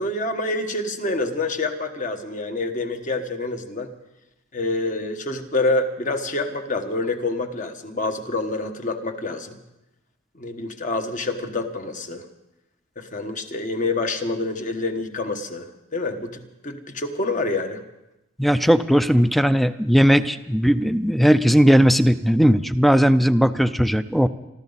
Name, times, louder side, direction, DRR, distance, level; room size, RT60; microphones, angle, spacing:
voice 1, 0.0-3.9 4.5-9.6 10.3-12.2 13.0-17.8, left 2 dB, 40° left, 6 dB, 1.3 m, -27 dB
voice 2, 18.4-24.3, equal, ahead, 13 dB, 0.5 m, -17 dB
26.5 x 13.0 x 4.1 m, 0.93 s
head